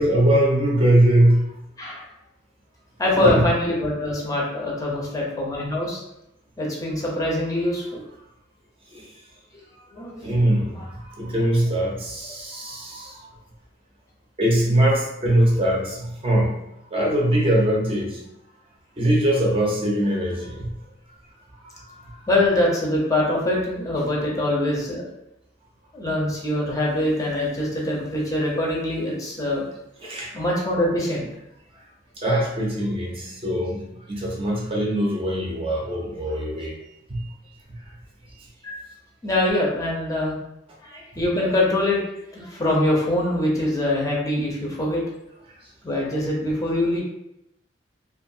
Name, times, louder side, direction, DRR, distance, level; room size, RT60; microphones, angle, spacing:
voice 1, 0.0-1.5 3.1-3.5 8.9-9.1 10.2-13.3 14.4-16.6 16.9-18.2 19.0-20.7 21.6-21.7 22.0-22.2 30.0-30.3 32.2-36.7 37.1-37.2 37.8-37.9, right 1 dB, 30° right, -3 dB, 0.5 m, -22 dB
voice 2, 3.0-6.0 6.6-8.0 9.9-10.4 10.7-10.9 12.5-12.8 22.3-25.0 25.9-29.6 30.3-31.3 38.6-38.8 39.2-40.4 40.8-42.0 42.3-45.0 45.8-47.0, left 1 dB, 20° left, -3 dB, 0.6 m, -24 dB
2.5 x 2.4 x 2.6 m, 0.84 s
head